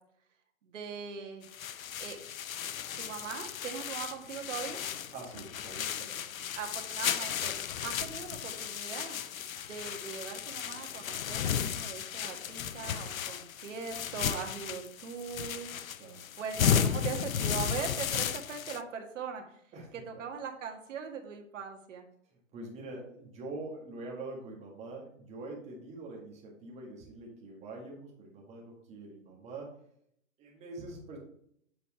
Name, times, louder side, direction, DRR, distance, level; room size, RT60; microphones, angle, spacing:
voice 1, 0.6-1.5 2.0-2.2 3.0-4.8 6.6-7.5 7.8-9.2 9.7-15.7 16.4-19.4 20.1-22.1, right 6 dB, 65° right, 3 dB, 1.7 m, -40 dB
sound 1, 1.4-18.8, left 8 dB, 85° left, 0.6 m, -34 dB
voice 2, 5.1-6.6 16.0-16.3 19.7-20.0 22.3-29.8 30.4-31.2, right 2 dB, 15° right, -1 dB, 1.8 m, -44 dB
7.6 x 4.2 x 4.2 m, 0.68 s
hypercardioid pair, 150°, 40 cm